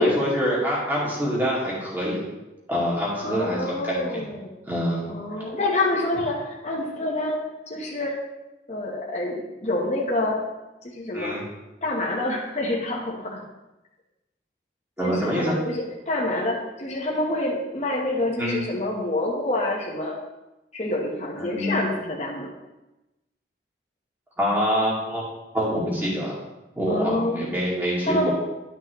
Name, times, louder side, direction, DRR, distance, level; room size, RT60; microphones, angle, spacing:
voice 1, 0.0-2.2 2.7-4.3 4.7-5.1 11.1-11.4 15.0-15.5 18.4-18.6 21.3-21.8 24.4-25.2 25.5-26.4 26.8-28.3, equal, 10° right, -6 dB, 2.4 m, -25 dB
voice 2, 3.2-4.5 5.1-7.4 7.7-8.2 8.7-10.4 10.8-11.4 11.8-13.4 15.0-20.2 20.7-22.5 26.9-27.6 28.0-28.3, left 1 dB, 40° left, -4 dB, 1.2 m, -27 dB
12.0 x 5.9 x 3.1 m, 1.0 s
head